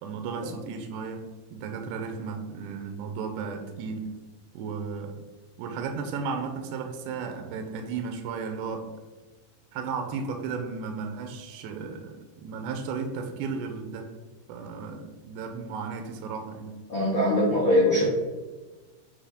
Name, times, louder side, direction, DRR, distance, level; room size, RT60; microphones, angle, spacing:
voice 1, 0.0-4.2 4.5-5.2 5.6-8.9 9.7-14.2 14.5-16.9, right 5 dB, 85° right, 5 dB, 2.4 m, -34 dB
voice 2, 16.9-18.0, left 1 dB, 80° left, -8 dB, 1.0 m, -22 dB
7.9 x 2.8 x 4.9 m, 1.2 s
omnidirectional pair, 5.3 m